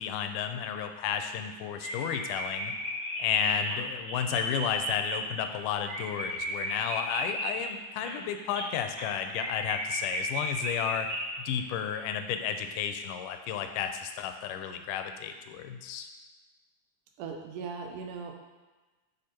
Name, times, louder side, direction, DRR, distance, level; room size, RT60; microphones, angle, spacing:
voice 1, 0.0-2.7 3.2-11.1 11.5-16.1, left 8 dB, 85° left, 7 dB, 2.1 m, -32 dB
sound 1, 1.4-1.5 1.8-11.6 11.9-12.0, equal, 25° right, 2.4 m, -35 dB
voice 2, 17.2-18.3, right 5 dB, 80° right, 3 dB, 2.3 m, -38 dB
6.6 x 5.0 x 4.3 m, 1.2 s
omnidirectional pair, 3.6 m